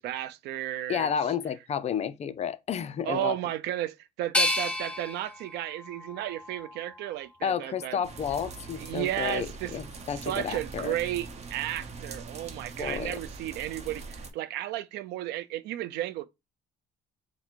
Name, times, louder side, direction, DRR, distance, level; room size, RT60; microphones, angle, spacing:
voice 1, 0.0-1.1 3.0-8.0 8.8-9.7 10.1-16.3, right 14 dB, 80° right, 0.5 m, -33 dB
voice 2, 0.9-3.3 7.4-10.9 12.8-13.2, left 8 dB, 40° left, 0.4 m, -31 dB
sound 1, 4.3-7.3 7.8-8.6, left 2 dB, 5° left, 0.8 m, -32 dB
sound 2, 8.0-14.3, right 4 dB, 40° right, 0.8 m, -42 dB
3.8 x 2.1 x 4.4 m
cardioid pair, 110°, 17 cm